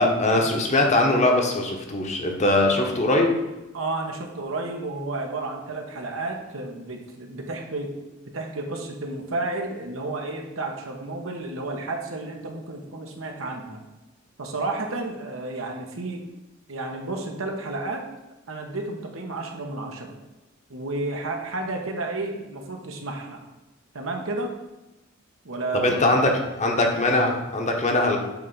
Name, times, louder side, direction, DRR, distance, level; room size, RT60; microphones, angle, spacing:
voice 1, 0.0-3.3 25.7-26.3 26.6-28.2, left 2 dB, 35° left, 2 dB, 1.1 m, -21 dB
voice 2, 3.7-8.0 8.3-13.8 14.4-16.2 16.7-18.0 18.5-20.2 20.7-23.5 23.9-24.5 25.4-26.2, right 2 dB, 70° right, 2 dB, 1.1 m, -31 dB
8.2 x 3.4 x 5.5 m, 1.0 s
head